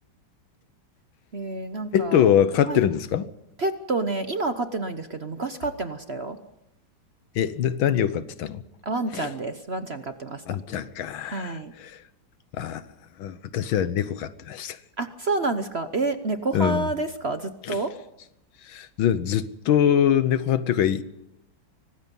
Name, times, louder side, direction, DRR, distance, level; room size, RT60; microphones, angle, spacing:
voice 1, 1.3-2.3 2.7-2.9 3.6-6.4 8.8-10.4 11.3-11.7 15.0-17.9, right 3 dB, 40° right, 1.0 m, -29 dB
voice 2, 1.9-3.3 7.4-8.6 9.1-9.3 10.5-12.0 12.5-12.8 13.2-14.8 16.5-16.9 17.7-17.8 18.7-21.0, left 9 dB, 80° left, 1.7 m, -23 dB
24.5 x 19.5 x 5.4 m
omnidirectional pair, 2.2 m